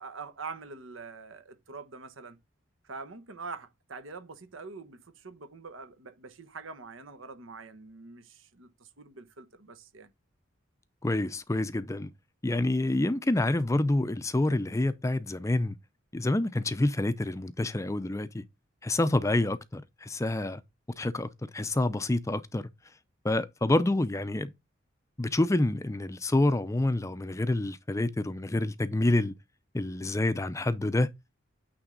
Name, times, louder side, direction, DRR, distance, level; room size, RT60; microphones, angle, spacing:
voice 1, 0.0-2.4 2.8-10.1, right 4 dB, 85° right, 1.1 m, -44 dB
voice 2, 11.0-12.1 12.4-15.8 16.1-18.4 18.8-20.6 21.0-22.7 23.2-24.5 25.2-29.3 29.7-31.1, left 2 dB, 15° left, 0.4 m, -27 dB
8.9 x 3.5 x 3.7 m
head